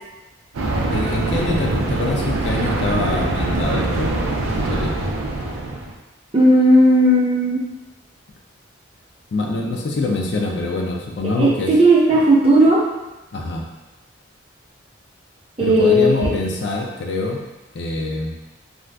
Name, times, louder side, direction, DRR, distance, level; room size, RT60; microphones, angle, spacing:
sound 1, 0.5-5.9, right 2 dB, 90° right, 0.5 m, -23 dB
voice 1, 0.9-4.1 4.5-4.9 9.3-11.7 12.1-12.2 13.3-13.7 15.6-17.4 17.7-18.4, left 2 dB, 60° left, 0 dB, 0.4 m, -24 dB
voice 2, 6.3-7.6 11.4-12.8 15.6-16.3, right 1 dB, 30° right, -6 dB, 0.6 m, -14 dB
2.6 x 2.4 x 3.3 m, 1.1 s
head